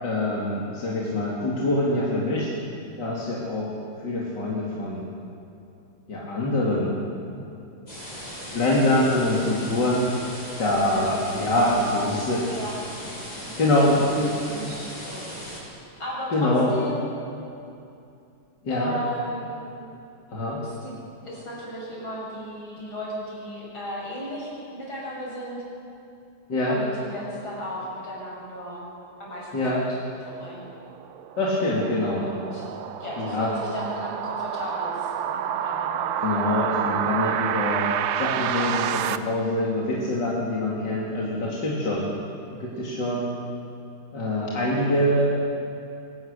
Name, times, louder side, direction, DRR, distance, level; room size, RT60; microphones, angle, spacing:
voice 1, 0.0-2.5 3.0-3.7 4.0-5.0 6.1-6.9 8.5-10.0 10.6-12.4 13.6-14.3 16.3-16.7 18.6-18.9 20.3-20.6 26.5-26.8 29.5-29.8 31.4-32.2 33.2-33.5 36.2-42.0 42.5-43.3 44.1-45.3, left 1 dB, 55° left, -5 dB, 3.2 m, -24 dB
sound 1, 7.9-15.6, equal, 20° left, 6.8 m, -38 dB
voice 2, 11.5-12.2 12.5-12.8 13.3-13.9 14.2-15.2 16.0-17.0 18.7-19.6 20.6-25.6 26.7-28.9 29.2-29.8 30.3-30.7 32.1-32.7 33.0-36.2, equal, 75° left, -4 dB, 7.2 m, -35 dB
sound 2, 30.5-39.2, right 9 dB, 70° right, 1.4 m, -29 dB
23.0 x 17.0 x 6.8 m, 2.6 s
omnidirectional pair, 2.2 m